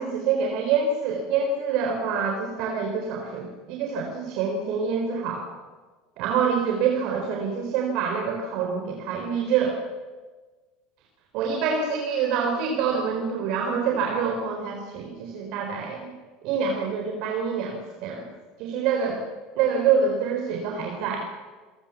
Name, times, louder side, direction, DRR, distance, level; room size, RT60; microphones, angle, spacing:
voice 1, 0.0-5.5 6.2-9.8 11.3-16.1 16.4-18.3 18.6-19.2 19.6-21.2, right 6 dB, 60° right, 1 dB, 4.0 m, -26 dB
28.0 x 17.0 x 7.2 m, 1.4 s
hypercardioid pair, 75°, 0 cm